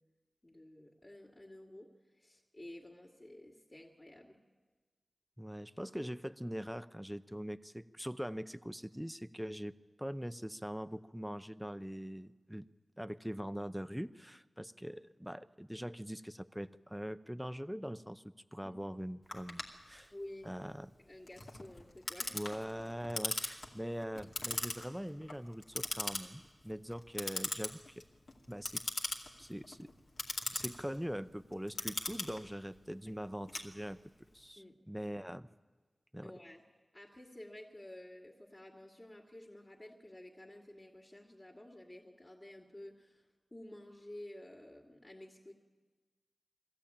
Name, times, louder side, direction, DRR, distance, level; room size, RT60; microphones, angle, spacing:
voice 1, 0.4-4.4 18.6-18.8 20.1-20.6 21.0-22.4 34.6-34.8 36.2-36.6 36.9-45.5, left 1 dB, 30° left, -1 dB, 2.3 m, -52 dB
voice 2, 5.4-9.7 10.0-12.7 13.0-20.1 20.4-20.9 22.3-28.0 28.5-28.8 29.4-29.9 30.5-34.0 34.3-35.5 36.1-36.3, equal, ahead, 13 dB, 0.7 m, -42 dB
Clock, 19.3-34.2, left 2 dB, 75° left, 2.2 m, -41 dB
22.0 x 14.5 x 8.8 m, 1.4 s
wide cardioid pair, 60°, 0 cm